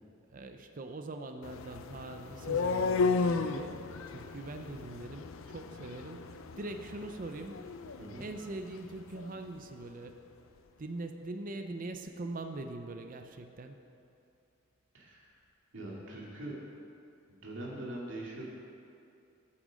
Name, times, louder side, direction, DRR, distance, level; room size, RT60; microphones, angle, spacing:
voice 1, 0.3-7.6 8.2-10.2 10.8-13.8, right 2 dB, 40° right, 6 dB, 0.6 m, -42 dB
sound 1, 1.4-9.4, left 4 dB, 75° left, 0.5 m, -35 dB
voice 2, 14.9-15.3 15.7-16.5 17.4-18.4, right 1 dB, 65° right, -4 dB, 2.4 m, -42 dB
8.9 x 8.6 x 6.4 m, 2.6 s
head